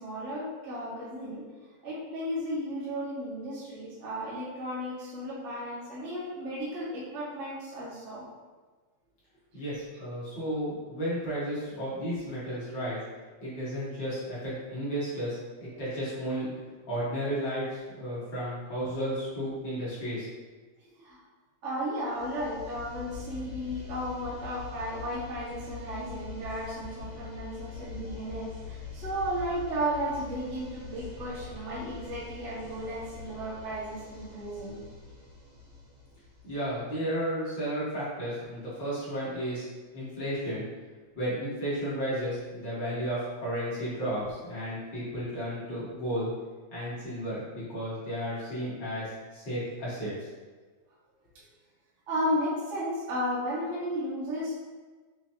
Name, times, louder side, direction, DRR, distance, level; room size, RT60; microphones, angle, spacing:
voice 1, 0.0-1.4 1.8-8.2 21.0-21.2 21.6-34.8 52.1-54.5, equal, 80° right, -7 dB, 0.6 m, -34 dB
voice 2, 9.5-13.0 13.4-16.5 16.9-20.3 36.4-39.7 39.9-40.6 41.1-46.3 46.7-50.3, equal, 45° left, -10 dB, 1.7 m, -33 dB
sound 1, 22.1-36.9, left 5 dB, 30° right, 1.1 m, -44 dB
5.6 x 3.1 x 2.7 m, 1.4 s
omnidirectional pair, 3.5 m